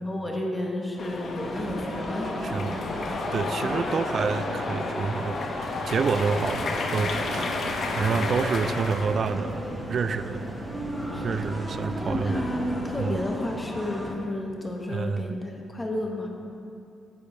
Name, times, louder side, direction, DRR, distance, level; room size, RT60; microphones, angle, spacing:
voice 1, 0.0-2.8 3.6-3.8 11.1-11.4 12.1-16.3, left 1 dB, 15° left, 0 dB, 1.2 m, -32 dB
sound 1, 1.0-9.4, left 3 dB, 55° left, 0.9 m, -32 dB
sound 2, 1.4-14.2, equal, 5° right, 1.3 m, -36 dB
voice 2, 2.4-2.8 3.3-5.4 5.9-10.5 11.2-12.5 13.0-13.2 14.9-15.4, right 5 dB, 50° right, 13 dB, 0.4 m, -28 dB
sound 3, 6.4-13.2, right 3 dB, 85° right, 0.8 m, -38 dB
10.5 x 8.4 x 3.2 m, 2.5 s
cardioid pair, 90°, 0 cm